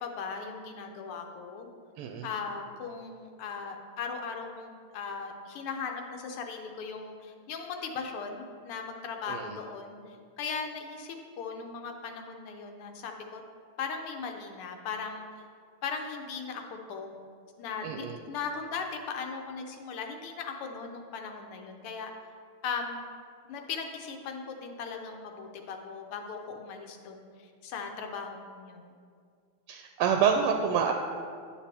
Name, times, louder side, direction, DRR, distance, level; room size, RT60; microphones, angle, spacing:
voice 1, 0.0-1.7 2.2-13.4 13.8-15.2 15.8-17.1 17.6-22.1 22.6-23.0 23.4-28.9, left 5 dB, 85° left, 3 dB, 1.7 m, -38 dB
voice 2, 2.0-2.3 9.3-9.5 17.8-18.2 29.7-30.9, right 7 dB, 90° right, 4 dB, 1.5 m, -27 dB
9.9 x 6.6 x 3.4 m, 2.2 s
omnidirectional pair, 2.4 m